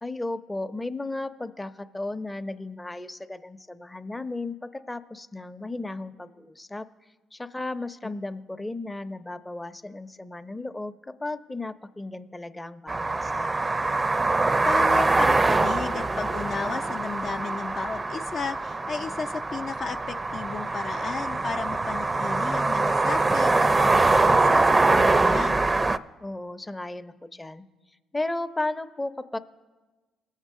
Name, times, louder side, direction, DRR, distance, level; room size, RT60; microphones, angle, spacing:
voice 1, 0.0-6.9 7.3-13.5 26.2-27.7 28.1-29.4, left 2 dB, 15° left, 9 dB, 0.7 m, -34 dB
sound 1, 12.9-26.0, right 3 dB, 25° right, 0.5 m, -23 dB
voice 2, 14.6-25.6, left 5 dB, 50° left, 4 dB, 0.6 m, -34 dB
20.5 x 7.3 x 3.7 m, 1.2 s
hypercardioid pair, 55°, 0 cm